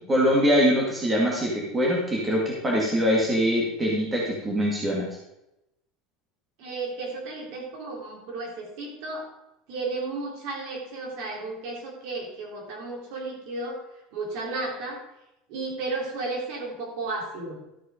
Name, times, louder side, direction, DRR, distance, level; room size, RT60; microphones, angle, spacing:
voice 1, 0.1-5.1, equal, 15° right, -2 dB, 2.0 m, -23 dB
voice 2, 6.6-9.3 9.7-13.8 14.1-15.0 15.5-17.6, right 3 dB, 55° right, -1 dB, 3.8 m, -33 dB
13.0 x 6.0 x 5.1 m, 0.88 s
cardioid pair, 170°, 0 cm